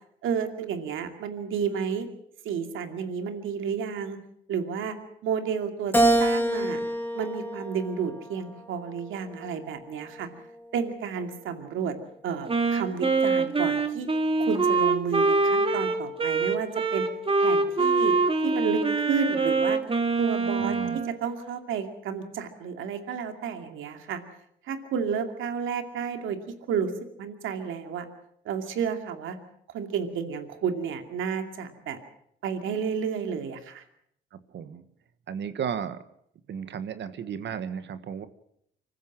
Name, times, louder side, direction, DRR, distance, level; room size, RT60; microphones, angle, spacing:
voice 1, 0.2-2.1 2.4-4.2 4.5-5.0 5.2-6.8 7.1-10.3 10.7-12.0 12.2-14.1 14.4-17.1 17.4-18.1 18.4-19.8 20.2-24.2 24.6-26.9 27.2-28.1 28.4-29.4 29.7-32.0 32.4-33.8, right 6 dB, 80° right, 6 dB, 2.5 m, -31 dB
Keyboard (musical), 5.9-8.4 9.0-10.2, right 1 dB, 10° left, 2.3 m, -26 dB
Wind instrument woodwind instrument, 12.5-21.1, right 3 dB, 30° right, 2.4 m, -24 dB
voice 2, 20.6-21.0 34.3-34.9 35.3-36.0 36.5-38.3, right 8 dB, 65° right, 12 dB, 1.5 m, -34 dB
25.5 x 15.0 x 7.6 m, 0.72 s
cardioid pair, 90°, 20 cm